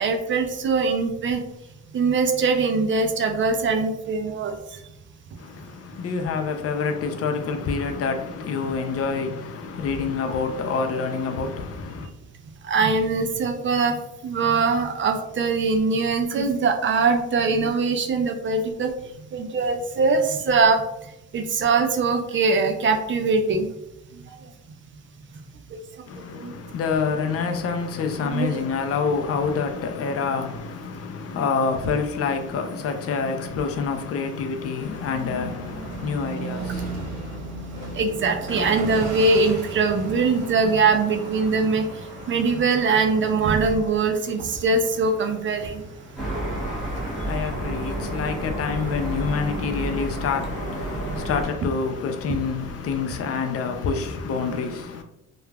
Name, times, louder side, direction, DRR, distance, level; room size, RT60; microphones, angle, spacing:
voice 1, 0.0-1.4 1.9-4.6 12.6-18.9 19.3-20.8 21.3-23.7 24.3-24.4 25.7-25.8 26.4-26.5 28.2-28.5 37.9-41.9 42.3-45.8 51.1-51.2 52.3-52.4, right 4 dB, 40° right, 0.4 m, -22 dB
voice 2, 5.4-12.1 26.1-37.4 46.6-55.0, left 5 dB, 50° left, 0.4 m, -27 dB
sound 1, 34.8-53.4, right 2 dB, 60° right, 1.2 m, -38 dB
sound 2, 46.1-51.5, right 1 dB, ahead, 1.1 m, -30 dB
3.1 x 2.3 x 2.2 m
cardioid pair, 90°, 30 cm